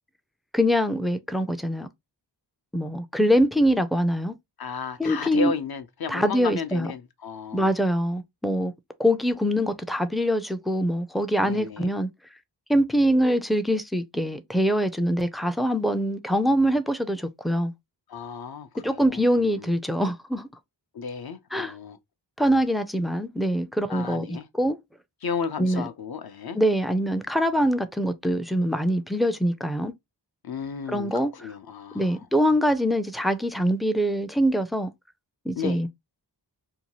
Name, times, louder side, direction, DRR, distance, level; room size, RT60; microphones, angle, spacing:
voice 1, 0.5-1.9 2.7-4.4 5.0-5.5 6.1-6.9 7.5-8.7 9.0-12.1 12.7-17.7 18.8-20.5 21.5-21.7 22.4-24.8 25.6-25.8 26.5-29.9 30.9-31.3 31.9-34.9 35.5-35.9, equal, ahead, 0.3 m, -24 dB
voice 2, 4.6-7.7 11.4-11.9 18.1-19.7 20.9-22.0 23.9-24.5 25.2-26.6 30.4-32.3 35.6-35.8, left 6 dB, 55° left, 0.6 m, -34 dB
2.7 x 2.3 x 2.9 m
wide cardioid pair, 55°, 44 cm